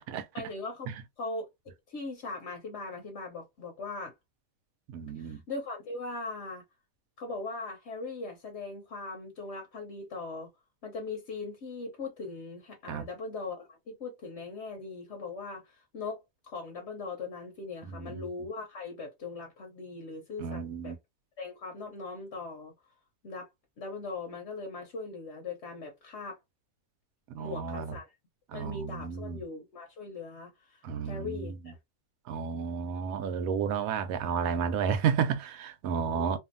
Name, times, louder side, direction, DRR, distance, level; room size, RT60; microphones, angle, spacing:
voice 1, 0.3-0.9 1.2-4.1 5.2-6.6 7.2-10.5 10.8-21.0 21.4-22.7 23.2-23.5 23.8-26.4 27.4-28.1 28.5-31.8 36.1-36.4, left 3 dB, 60° left, 1.0 m, -40 dB
voice 2, 4.9-5.4 12.9-13.1 17.8-18.2 20.4-21.0 27.3-27.9 28.5-29.4 30.8-31.6 32.3-36.4, right 7 dB, 85° right, 1.1 m, -32 dB
2.6 x 2.5 x 2.5 m
omnidirectional pair, 1.4 m